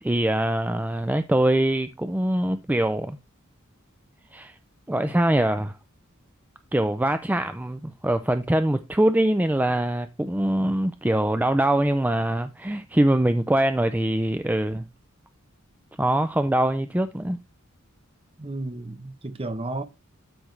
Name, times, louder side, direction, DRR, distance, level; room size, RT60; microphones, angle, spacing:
voice 1, 0.0-3.2 4.3-4.6 4.9-5.7 6.7-14.9 16.0-17.4, right 1 dB, 10° right, 0.4 m, -23 dB
voice 2, 18.4-19.8, right 2 dB, 25° right, 0.9 m, -32 dB
12.0 x 6.3 x 3.3 m
head